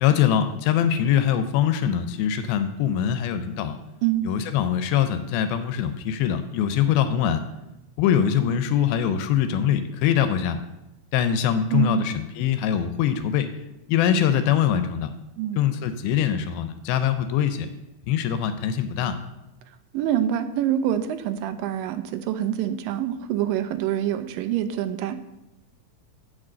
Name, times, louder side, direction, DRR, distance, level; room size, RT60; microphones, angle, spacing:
voice 1, 0.0-3.8 4.2-7.4 8.0-10.6 11.1-13.5 13.9-15.1 15.6-17.7 18.1-19.2, left 9 dB, 85° left, 9 dB, 2.4 m, -23 dB
voice 2, 11.7-12.1 15.4-15.6 19.9-25.2, right 10 dB, 80° right, 9 dB, 2.2 m, -25 dB
8.0 x 5.0 x 7.3 m, 0.93 s
omnidirectional pair, 4.2 m